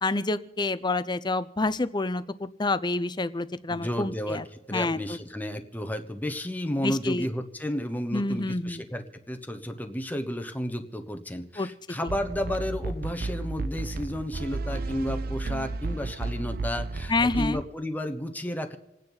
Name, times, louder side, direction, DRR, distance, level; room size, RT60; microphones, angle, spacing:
voice 1, 0.0-4.4 4.7-5.0 6.8-7.3 8.1-8.8 11.6-11.7 17.1-17.6, left 2 dB, 25° left, 14 dB, 0.7 m, -28 dB
voice 2, 3.7-18.8, equal, 10° left, 7 dB, 1.1 m, -32 dB
sound 1, 12.1-17.7, right 3 dB, 55° right, 0.6 m, -33 dB
28.0 x 9.7 x 4.0 m, 0.94 s
head